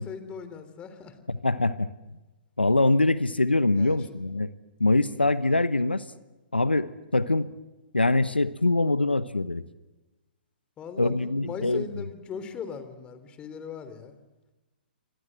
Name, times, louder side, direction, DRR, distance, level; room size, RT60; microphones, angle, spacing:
voice 1, 0.0-1.2 3.8-4.0 10.8-14.2, left 6 dB, 20° left, 11 dB, 3.4 m, -39 dB
voice 2, 1.3-1.9 2.6-4.5 4.8-6.0 6.5-7.5 7.9-9.6 11.0-11.8, left 2 dB, 90° left, 15 dB, 1.0 m, -23 dB
29.0 x 24.5 x 7.6 m, 1.1 s
figure-of-eight pair, 120°, 5 cm